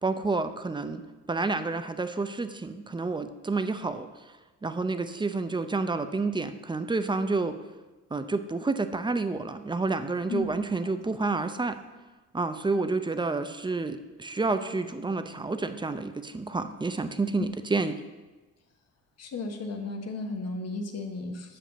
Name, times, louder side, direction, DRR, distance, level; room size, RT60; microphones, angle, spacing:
voice 1, 0.0-1.0 1.3-4.1 4.6-7.6 8.1-11.8 12.3-17.9, right 3 dB, 15° right, 10 dB, 0.5 m, -29 dB
voice 2, 19.2-21.6, left 3 dB, 55° left, 5 dB, 1.3 m, -34 dB
7.2 x 5.1 x 6.8 m, 1.2 s
cardioid pair, 90°, 30 cm